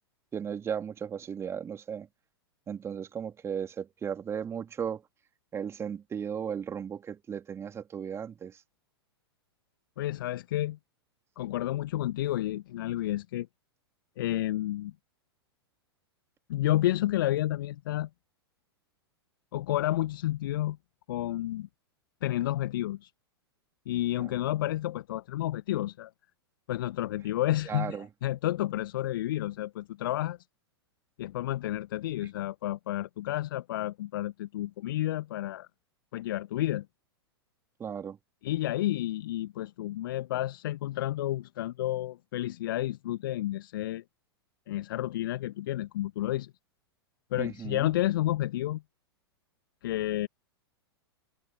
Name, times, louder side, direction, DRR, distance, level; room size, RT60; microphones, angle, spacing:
voice 1, 0.3-2.1 2.7-5.0 5.5-8.6 24.2-24.3 27.6-28.1 37.8-38.2 47.4-47.9, right 7 dB, 20° right, 3.1 m, -36 dB
voice 2, 10.0-10.8 11.4-13.5 14.2-14.9 16.5-18.1 19.5-20.8 21.1-21.7 22.2-23.1 23.9-26.1 26.7-30.4 31.2-35.7 36.1-36.8 38.4-44.0 44.7-46.5 47.3-48.8 49.8-50.3, left 14 dB, 55° left, 1.2 m, -30 dB
figure-of-eight pair, 100°, 13 cm